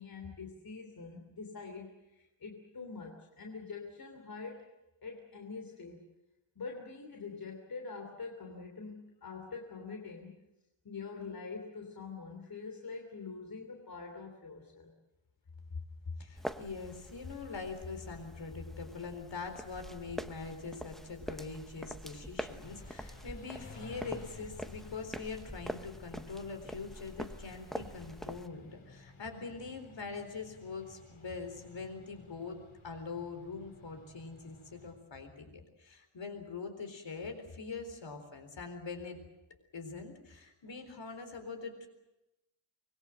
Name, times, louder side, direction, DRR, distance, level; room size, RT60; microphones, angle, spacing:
voice 1, 0.0-4.7 5.0-6.0 6.5-10.3 10.8-14.9, left 4 dB, 45° left, 2 dB, 3.2 m, -45 dB
voice 2, 16.2-32.6 32.8-39.2 39.7-41.9, left 4 dB, 60° left, 6 dB, 4.2 m, -43 dB
sound 1, 16.4-28.5, equal, ahead, 0.8 m, -45 dB
Car / Idling / Accelerating revving vroom, 22.6-34.9, left 3 dB, 85° left, 8.0 m, -55 dB
25.0 x 21.0 x 7.8 m, 0.95 s
wide cardioid pair, 175°, 49 cm